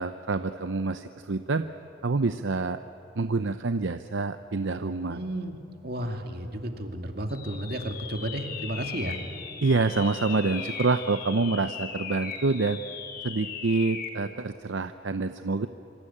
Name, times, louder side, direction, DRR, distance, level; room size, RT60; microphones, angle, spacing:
voice 1, 0.0-1.6 2.0-2.8 3.2-5.2 9.6-12.8 13.2-15.7, right 3 dB, 70° right, 10 dB, 0.7 m, -27 dB
voice 2, 5.1-9.2, right 1 dB, 50° right, 4 dB, 2.3 m, -33 dB
sound 1, 7.3-14.2, left 6 dB, 50° left, 2.4 m, -38 dB
26.5 x 25.0 x 8.7 m, 2.7 s
head